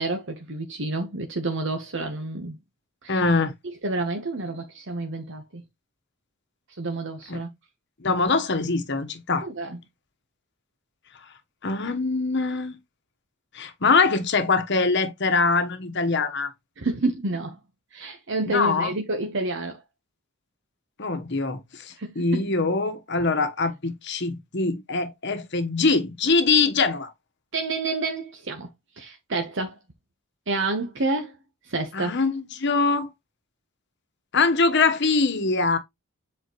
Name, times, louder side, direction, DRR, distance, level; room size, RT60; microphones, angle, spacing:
voice 1, 0.0-2.6 3.0-3.2 3.8-5.6 6.8-7.5 9.4-9.8 16.8-17.6 17.9-19.8 22.0-22.5 27.5-28.7 29.0-29.8 30.5-31.4 31.7-32.1, right 2 dB, 60° right, 1.0 m, -29 dB
voice 2, 3.1-3.5 7.3-7.4 8.0-9.5 11.6-12.8 13.5-16.5 18.5-18.9 21.0-27.1 31.9-33.1 34.3-35.8, left 4 dB, 55° left, 1.1 m, -23 dB
7.8 x 4.3 x 3.0 m
head